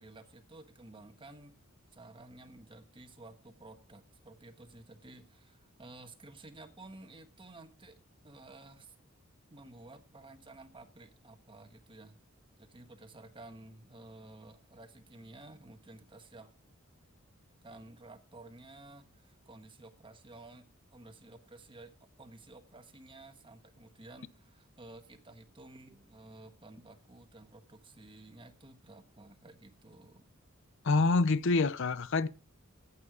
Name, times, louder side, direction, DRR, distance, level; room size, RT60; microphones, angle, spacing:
voice 1, 0.0-1.5 1.9-8.0 8.2-8.9 9.5-12.2 12.6-16.5 17.6-20.7 20.9-21.9 22.2-30.3, right 2 dB, 25° right, 1.4 m, -53 dB
voice 2, 30.8-32.3, left 3 dB, 60° left, 0.6 m, -26 dB
14.5 x 8.5 x 4.9 m
head